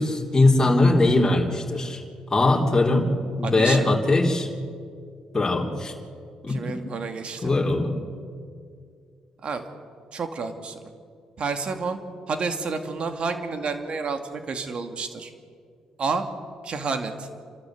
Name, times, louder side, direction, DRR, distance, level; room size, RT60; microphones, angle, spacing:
voice 1, 0.0-2.0 2.3-3.1 3.4-4.5 5.3-5.9 6.4-6.8 7.4-7.9, left 2 dB, 25° left, -1 dB, 3.4 m, -20 dB
voice 2, 3.4-3.9 6.5-7.5 9.4-9.7 10.1-10.8 11.4-12.0 12.3-15.3 16.0-16.2 16.6-17.3, right 4 dB, 55° right, 7 dB, 2.4 m, -30 dB
29.5 x 13.0 x 8.0 m, 2.2 s
supercardioid pair, 60°, 2 cm